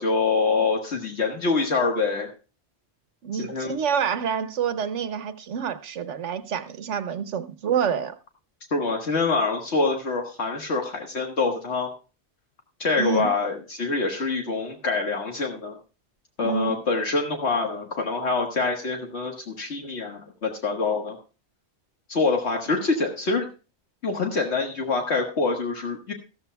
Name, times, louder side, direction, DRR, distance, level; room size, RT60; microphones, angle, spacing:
voice 1, 0.0-2.3 3.3-3.8 8.7-11.9 12.8-15.8 16.4-21.2 22.1-23.5 24.0-26.1, left 3 dB, 70° left, 1.8 m, -25 dB
voice 2, 3.2-8.1 13.0-13.3 16.4-16.7, right 7 dB, 85° right, 1.2 m, -27 dB
14.5 x 14.0 x 2.3 m
omnidirectional pair, 1.2 m